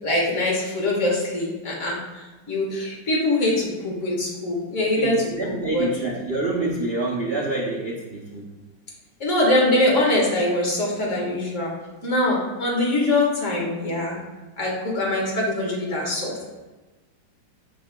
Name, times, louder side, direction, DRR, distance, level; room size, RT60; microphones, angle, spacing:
voice 1, 0.0-6.1 9.2-11.7 12.0-14.2 14.6-16.5, left 1 dB, 40° left, -3 dB, 1.8 m, -23 dB
voice 2, 5.0-8.5, right 2 dB, 75° right, -4 dB, 0.5 m, -27 dB
8.2 x 5.9 x 2.3 m, 1.2 s
omnidirectional pair, 2.2 m